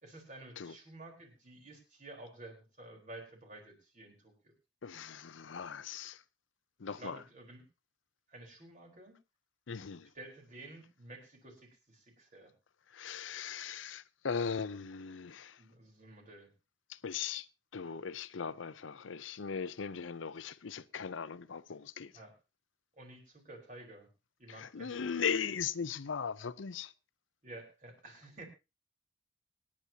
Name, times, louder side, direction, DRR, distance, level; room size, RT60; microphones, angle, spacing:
voice 1, 0.0-4.5 7.0-7.6 8.3-9.1 10.1-12.5 15.6-16.5 22.1-22.3 23.0-24.1 24.4-25.0 27.4-28.4, right 2 dB, 40° right, 4.2 m, -51 dB
voice 2, 4.8-6.2 6.8-7.2 9.7-10.1 12.9-15.6 16.9-17.5 17.7-22.1 24.5-26.9, left 6 dB, 80° left, 0.6 m, -38 dB
25.0 x 9.8 x 2.9 m
head